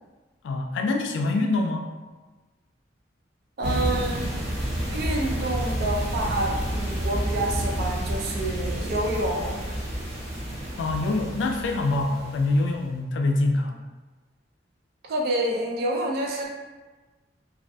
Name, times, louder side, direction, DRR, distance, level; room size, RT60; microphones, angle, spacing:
voice 1, 0.4-1.9 10.8-13.8, left 2 dB, 75° left, 3 dB, 0.3 m, -25 dB
sound 1, 3.6-12.7, equal, 35° right, 0.8 m, -30 dB
voice 2, 3.6-4.3 4.9-9.6 15.0-16.5, right 1 dB, 55° right, -1 dB, 0.4 m, -28 dB
sound 2, 3.9-7.3, equal, 80° right, 1.2 m, -46 dB
2.3 x 2.2 x 2.6 m, 1.2 s
head